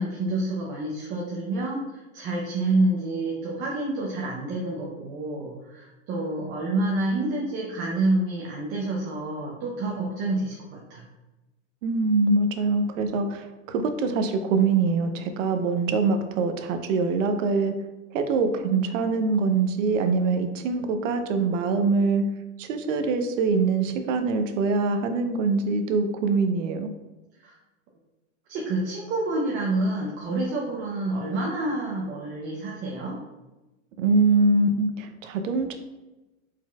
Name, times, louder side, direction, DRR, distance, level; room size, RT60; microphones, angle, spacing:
voice 1, 0.0-11.1 27.4-27.5 28.5-33.2, right 2 dB, 30° right, -3 dB, 0.6 m, -28 dB
voice 2, 11.8-17.7 18.1-22.2 22.6-26.9 34.0-35.8, right 4 dB, 70° right, 7 dB, 0.7 m, -24 dB
4.5 x 4.0 x 2.3 m, 1.1 s
supercardioid pair, 140°, 40 cm